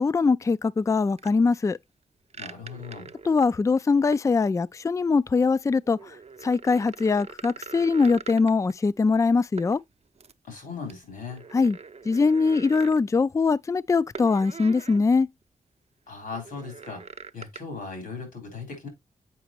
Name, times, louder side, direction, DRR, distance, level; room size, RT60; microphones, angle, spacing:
voice 1, 0.0-1.8 3.2-6.2 6.4-9.8 11.5-11.8 12.1-15.3, left 4 dB, 25° left, 0.3 m, -22 dB
sound 1, 1.2-1.3 2.3-3.6 4.1-4.3 5.8-8.7 9.6-9.8 10.2-10.3 10.9-13.0 14.1-15.0 15.4-15.5 16.3-17.6, right 5 dB, 50° right, 0.7 m, -42 dB
voice 2, 2.4-3.1 10.5-11.4 16.1-18.9, left 4 dB, 90° left, 3.6 m, -38 dB
7.5 x 5.0 x 3.0 m
supercardioid pair, 45°, 14 cm